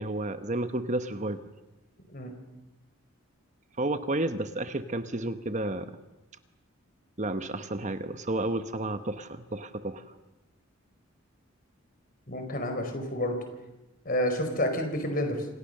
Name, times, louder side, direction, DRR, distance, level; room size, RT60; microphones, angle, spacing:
voice 1, 0.0-1.4 3.8-5.9 7.2-10.0, right 2 dB, 35° right, 10 dB, 1.0 m, -31 dB
voice 2, 12.3-13.4 14.0-15.5, left 1 dB, 40° left, 6 dB, 4.6 m, -29 dB
28.5 x 26.0 x 6.7 m, 1.0 s
head